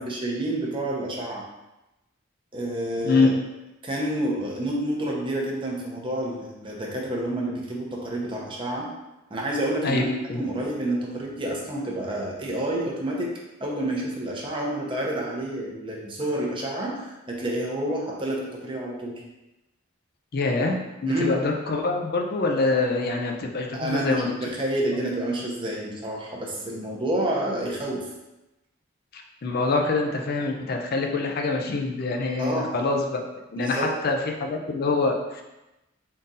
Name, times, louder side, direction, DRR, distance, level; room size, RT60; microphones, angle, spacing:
voice 1, 0.0-1.5 2.5-3.3 3.8-8.9 9.3-10.1 10.3-13.3 13.6-19.2 21.1-21.3 23.7-28.1 32.4-32.7 33.6-33.9, right 1 dB, 25° right, -2 dB, 0.7 m, -29 dB
voice 2, 20.3-24.3 29.1-33.2 33.5-35.4, left 3 dB, 50° left, 3 dB, 0.4 m, -25 dB
3.8 x 2.5 x 4.0 m, 0.97 s
head